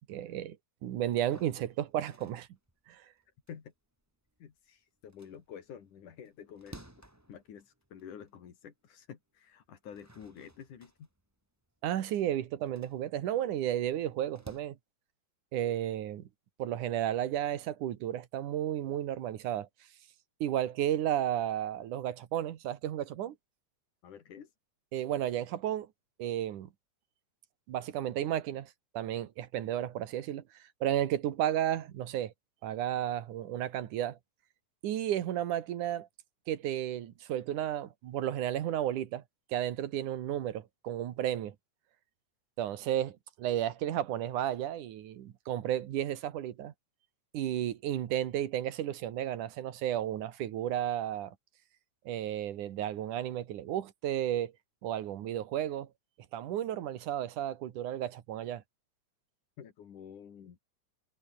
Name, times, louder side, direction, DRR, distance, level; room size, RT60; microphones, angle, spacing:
voice 1, 0.1-0.6 0.8-2.5 2.9-3.1 11.8-14.8 15.5-16.3 16.6-19.7 20.4-23.4 24.9-25.9 26.2-26.7 27.7-32.3 32.6-34.2 34.8-36.1 36.5-39.2 39.5-41.6 42.6-46.7 47.3-51.4 52.1-54.5 54.8-55.9 56.3-58.6, right 11 dB, 85° right, 3.0 m, -33 dB
sound 1, 1.1-4.6 5.0-8.5 8.9-9.0 9.6-14.6, right 1 dB, 5° right, 2.8 m, -56 dB
voice 2, 4.4-6.8 7.3-11.1 24.0-24.5 59.6-60.6, left 8 dB, 85° left, 4.1 m, -49 dB
omnidirectional pair, 3.5 m